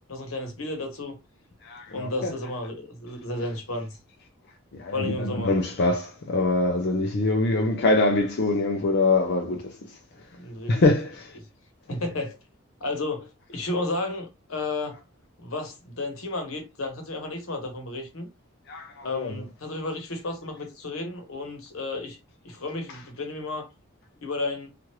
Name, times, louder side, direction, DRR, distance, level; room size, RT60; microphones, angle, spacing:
voice 1, 0.1-1.1 1.9-4.0 4.9-5.5 10.3-10.8 11.9-12.4 12.8-15.0 15.4-18.3 19.0-22.2 22.4-23.7 24.2-24.7, left 2 dB, 85° left, 1.0 m, -32 dB
voice 2, 1.6-2.3 4.8-9.7 10.7-11.3 18.7-19.3, left 2 dB, 55° left, 0.5 m, -24 dB
3.0 x 2.4 x 2.9 m
head